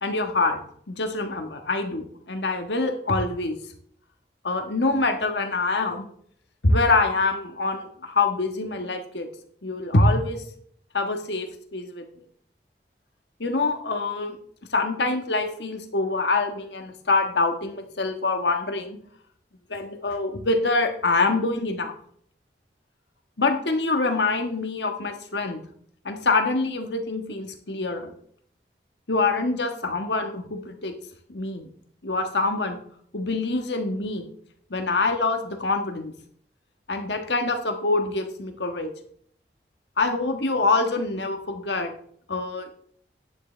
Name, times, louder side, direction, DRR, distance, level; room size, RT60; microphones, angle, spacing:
voice 1, 0.0-0.6 0.9-3.6 4.4-6.1 6.6-9.3 9.6-10.4 10.9-11.5 11.7-12.0 13.4-14.3 14.7-19.0 19.7-21.9 23.4-25.6 26.0-28.1 29.1-30.9 31.3-31.7 32.0-32.8 33.1-34.3 34.7-36.1 36.9-38.9 40.0-41.9 42.3-42.7, left 3 dB, 85° left, 6 dB, 1.4 m, -25 dB
11.0 x 9.9 x 3.3 m, 0.63 s
head